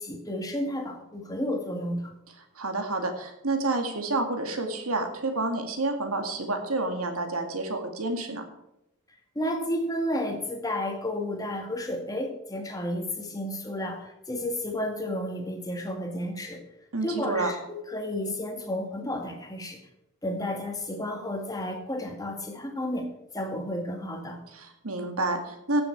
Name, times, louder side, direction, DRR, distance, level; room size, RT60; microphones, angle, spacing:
voice 1, 0.0-2.1 9.4-16.6 17.0-19.8 20.2-23.1 23.3-24.4, left 1 dB, 15° left, 3 dB, 1.8 m, -32 dB
voice 2, 2.6-8.4 16.9-17.5 24.5-25.8, right 2 dB, 85° right, 5 dB, 2.1 m, -29 dB
15.5 x 7.1 x 4.7 m, 0.88 s
head